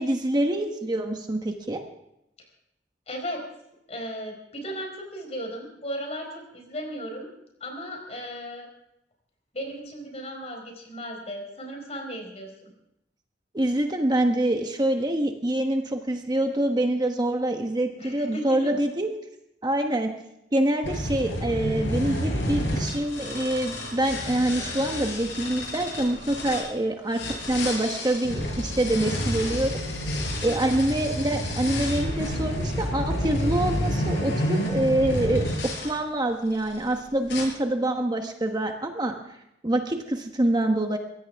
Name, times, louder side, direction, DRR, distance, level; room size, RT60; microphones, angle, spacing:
voice 1, 0.0-1.8 13.5-19.1 19.6-20.1 20.5-29.7 30.4-39.2 39.6-41.0, right 1 dB, 25° right, 4 dB, 1.2 m, -25 dB
voice 2, 3.1-3.5 3.9-7.3 7.6-8.7 9.5-12.7 18.0-18.7 30.4-30.8, equal, 35° left, 2 dB, 4.8 m, -36 dB
sound 1, 20.8-26.7 27.1-35.9 36.5-36.9 37.3-37.4, equal, 70° left, 7.3 m, -29 dB
23.0 x 16.5 x 3.5 m, 0.83 s
head